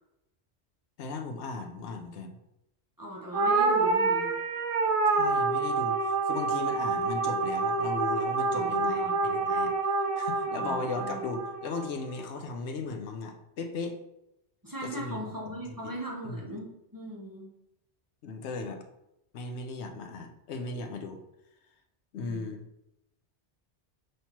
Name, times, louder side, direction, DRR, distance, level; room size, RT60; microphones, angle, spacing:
voice 1, 1.0-2.3 5.1-9.7 10.2-14.0 14.8-15.5 16.2-16.6 18.2-18.8 19.3-21.2 22.1-22.7, left 3 dB, 80° left, 5 dB, 0.9 m, -37 dB
voice 2, 3.0-4.3 8.5-9.2 10.6-11.2 14.6-16.7 16.9-17.5 22.2-22.5, right 1 dB, 20° right, -3 dB, 0.6 m, -38 dB
sound 1, 3.3-11.9, right 3 dB, 60° right, 0.3 m, -27 dB
5.6 x 3.2 x 2.9 m, 0.88 s
omnidirectional pair, 1.1 m